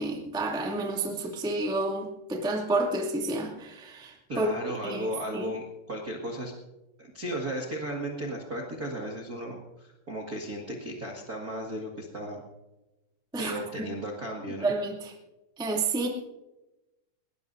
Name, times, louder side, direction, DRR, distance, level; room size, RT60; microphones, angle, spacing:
voice 1, 0.0-4.5 4.8-5.5 13.3-13.9 14.6-15.1 15.6-16.1, right 2 dB, ahead, 0 dB, 1.2 m, -30 dB
voice 2, 4.3-6.5 7.0-12.4 13.4-14.7, right 1 dB, 40° right, -1 dB, 1.4 m, -35 dB
20.0 x 20.0 x 2.7 m, 1.0 s
omnidirectional pair, 4.8 m